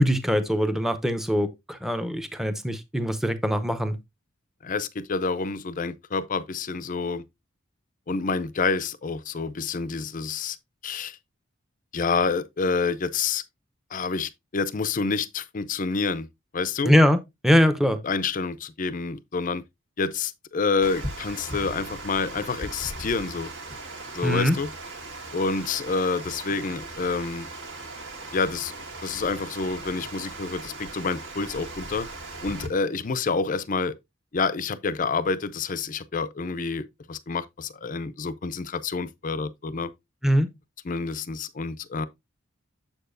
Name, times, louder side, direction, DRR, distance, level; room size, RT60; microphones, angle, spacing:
voice 1, 0.0-4.0 16.8-18.0 24.2-24.6 40.2-40.5, equal, ahead, 0.7 m, -22 dB
voice 2, 4.6-7.2 8.1-10.6 10.8-11.2 11.9-13.4 13.9-16.3 16.5-16.9 18.0-19.6 20.0-23.5 24.1-24.7 25.3-27.5 28.3-28.7 29.0-32.1 32.4-34.0 34.3-39.9 40.8-42.1, left 4 dB, 40° left, 0.5 m, -28 dB
Water, 20.8-32.7, right 2 dB, 65° right, 1.8 m, -38 dB
7.2 x 6.7 x 2.6 m
head